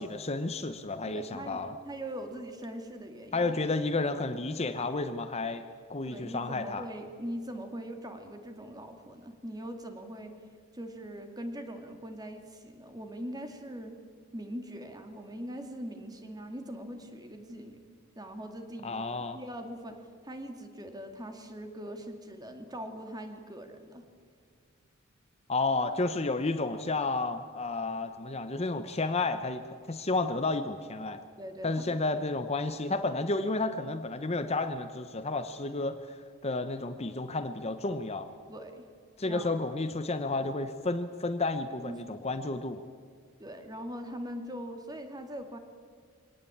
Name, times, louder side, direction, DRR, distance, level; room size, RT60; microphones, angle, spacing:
voice 1, 0.0-1.8 3.3-5.6 5.9-6.8 18.8-19.4 25.5-31.2 31.6-38.3 39.2-42.8, left 3 dB, 30° left, 9 dB, 0.9 m, -31 dB
voice 2, 1.1-3.5 6.1-10.4 10.7-14.0 14.3-17.8 18.2-20.0 20.2-24.0 31.4-32.0 38.5-38.8 39.2-39.5 41.8-42.0 42.5-42.6 43.4-45.6, equal, 20° right, 5 dB, 2.3 m, -41 dB
23.0 x 18.5 x 8.7 m, 2.1 s
head